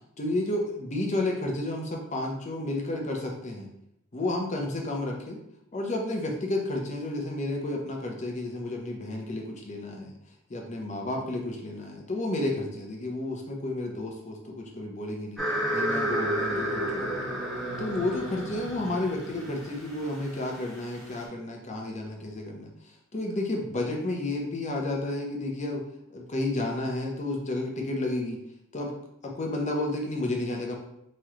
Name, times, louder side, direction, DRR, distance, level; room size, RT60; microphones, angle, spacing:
voice 1, 0.2-3.7 4.1-5.4 5.7-10.1 10.5-15.4 15.7-17.4 17.8-22.7 23.1-25.8 26.1-28.4 28.7-28.9 29.2-30.7, left 2 dB, 35° left, 0 dB, 0.7 m, -31 dB
sound 1, 15.4-21.2, right 1 dB, ahead, 1.0 m, -32 dB
3.1 x 3.1 x 3.6 m, 0.77 s
head